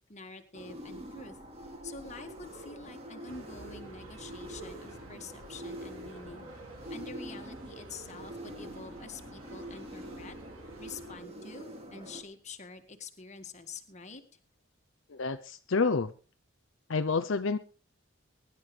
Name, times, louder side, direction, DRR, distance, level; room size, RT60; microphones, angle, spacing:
voice 1, 0.1-1.4 1.8-6.5 6.9-10.4 10.8-14.2, left 4 dB, 35° left, 6 dB, 1.7 m, -47 dB
sound 1, 0.5-12.2, right 1 dB, 30° right, 2.4 m, -45 dB
sound 2, 3.3-11.2, right 1 dB, 85° right, 3.2 m, -51 dB
voice 2, 15.1-16.1 16.9-17.6, left 4 dB, 60° left, 9 dB, 0.6 m, -28 dB
23.0 x 11.0 x 3.3 m, 0.37 s
head